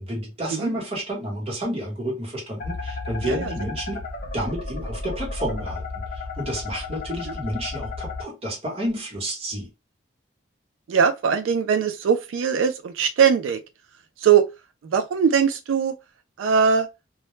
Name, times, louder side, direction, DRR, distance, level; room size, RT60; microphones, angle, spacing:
voice 1, 0.0-9.7, equal, 30° right, 1.0 m, -30 dB
sound 1, 2.6-8.2, left 3 dB, 45° left, 0.5 m, -33 dB
voice 2, 10.9-13.6 14.2-14.5 14.8-15.9 16.4-16.9, right 7 dB, 85° right, 0.3 m, -21 dB
2.2 x 2.0 x 3.0 m
head